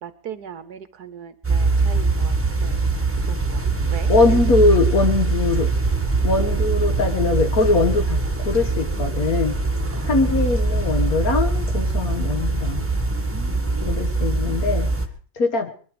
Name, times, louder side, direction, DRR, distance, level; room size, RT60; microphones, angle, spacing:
voice 1, 0.0-2.8 3.1-4.4 6.2-6.3 9.8-10.2 10.6-11.0 11.7-11.9 13.3-14.7, right 8 dB, 60° right, 12 dB, 1.4 m, -39 dB
sound 1, 1.4-15.1, right 3 dB, 10° right, 1.3 m, -22 dB
voice 2, 4.1-5.7 6.2-9.5 10.0-12.8 13.8-14.9 15.4-15.7, left 3 dB, 50° left, 7 dB, 1.7 m, -21 dB
22.0 x 11.5 x 5.0 m, 0.43 s
omnidirectional pair, 2.0 m